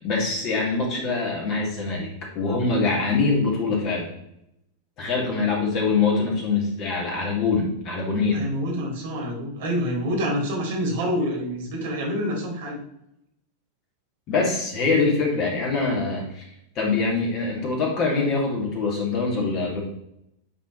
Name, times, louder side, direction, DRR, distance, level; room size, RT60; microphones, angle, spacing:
voice 1, 0.0-4.1 5.0-8.5 14.3-16.4 16.8-19.8, left 4 dB, 35° left, -2 dB, 2.3 m, -24 dB
voice 2, 8.3-12.8, equal, 55° right, -1 dB, 2.3 m, -27 dB
9.3 x 3.9 x 3.1 m, 0.80 s
figure-of-eight pair, 90°, 0 cm